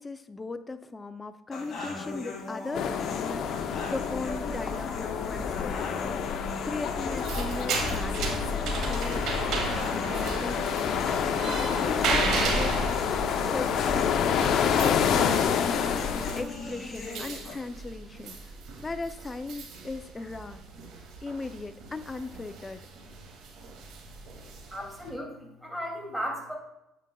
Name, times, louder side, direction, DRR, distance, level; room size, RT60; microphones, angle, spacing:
voice 1, 0.0-5.8 6.6-9.2 9.8-13.2 13.5-13.7 14.4-15.4 16.4-18.6 18.8-20.6 21.2-22.8, left 3 dB, 20° left, 10 dB, 0.5 m, -38 dB
sound 1, 1.5-17.5, left 3 dB, 40° left, 2.5 m, -38 dB
sound 2, 2.7-16.4, left 7 dB, 60° left, 0.7 m, -28 dB
sound 3, 7.0-25.1, right 4 dB, 70° right, 2.2 m, -35 dB
voice 2, 24.7-26.5, equal, 5° right, 0 dB, 2.6 m, -35 dB
9.0 x 8.8 x 2.3 m, 0.90 s
cardioid pair, 100°, 0 cm